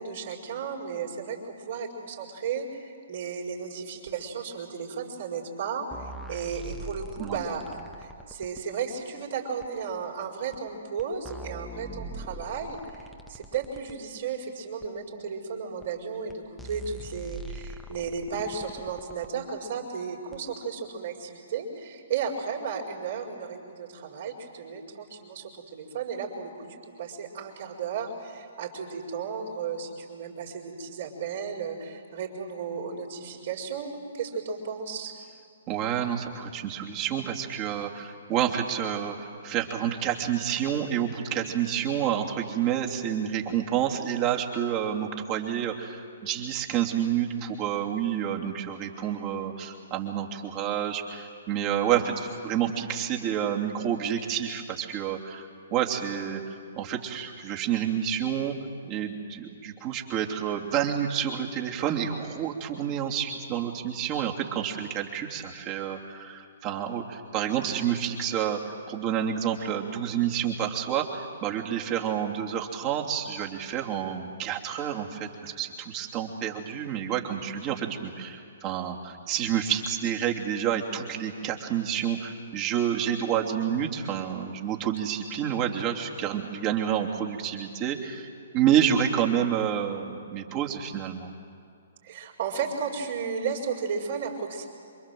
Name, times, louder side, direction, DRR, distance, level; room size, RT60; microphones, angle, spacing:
voice 1, 0.0-26.7 27.0-35.1 92.0-94.6, right 6 dB, 50° right, -6 dB, 4.7 m, -34 dB
sound 1, 5.9-8.6 9.6-9.7 10.5-10.6 11.0-14.0 14.8-14.9 15.8-15.9 16.3-16.4 16.6-19.3 20.3-20.4, right 2 dB, ahead, 1.2 m, -42 dB
voice 2, 35.7-58.5 58.8-88.3 88.5-91.3, right 9 dB, 30° right, 1 dB, 2.9 m, -29 dB
28.0 x 24.5 x 7.7 m, 2.4 s
figure-of-eight pair, 125°, 0 cm